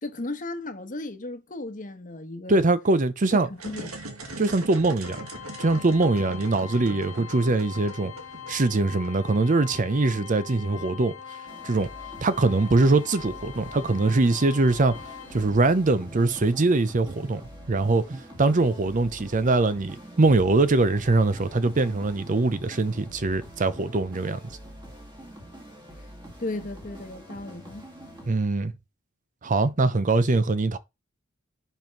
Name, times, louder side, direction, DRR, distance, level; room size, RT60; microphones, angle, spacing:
voice 1, 0.0-2.6 3.6-3.9 26.4-27.9, left 2 dB, 40° left, 1.1 m, -35 dB
voice 2, 2.5-3.5 4.4-5.2 5.6-8.1 8.5-11.1 11.6-11.9 12.2-15.0 15.3-17.4 17.7-24.4 28.3-28.7 29.4-30.8, right 3 dB, 35° right, 0.6 m, -22 dB
sound 1, 3.5-9.4, right 2 dB, 90° right, 1.9 m, -41 dB
Organ, 5.0-15.8, left 9 dB, 80° left, 1.5 m, -42 dB
sound 2, 11.5-28.3, equal, 20° right, 2.1 m, -45 dB
5.5 x 5.3 x 5.9 m
head